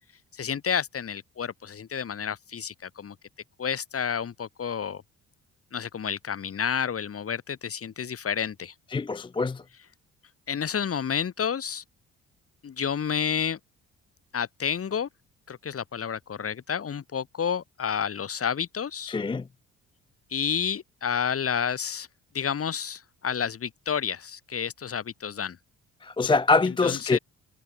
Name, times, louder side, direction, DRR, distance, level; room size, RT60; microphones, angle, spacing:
voice 1, 0.3-3.2 3.6-5.0 5.7-8.7 10.5-11.8 12.6-13.6 14.3-15.1 15.5-19.2 20.3-22.1 22.3-25.6 26.7-27.2, left 7 dB, 50° left, 4.7 m, -30 dB
voice 2, 8.9-9.6 19.1-19.4 26.0-27.2, left 3 dB, 15° left, 0.5 m, -24 dB
cardioid pair, 90°, 30 cm